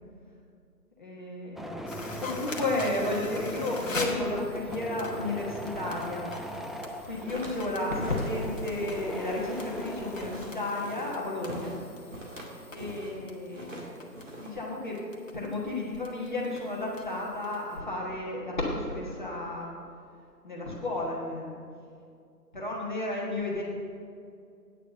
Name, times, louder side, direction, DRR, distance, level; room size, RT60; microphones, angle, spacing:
voice 1, 1.0-6.3 7.0-11.7 12.7-13.9 14.4-15.0 15.3-19.7 20.4-21.6 22.5-23.6, left 2 dB, 30° left, -4 dB, 1.3 m, -32 dB
sound 1, 1.6-10.5, equal, ahead, 0.3 m, -39 dB
sound 2, 1.9-17.8, left 2 dB, 50° left, 1.3 m, -44 dB
sound 3, 6.9-13.2 13.5-14.7, right 1 dB, 50° right, 1.9 m, -44 dB
9.1 x 6.6 x 6.5 m, 2.3 s
figure-of-eight pair, 165°, 49 cm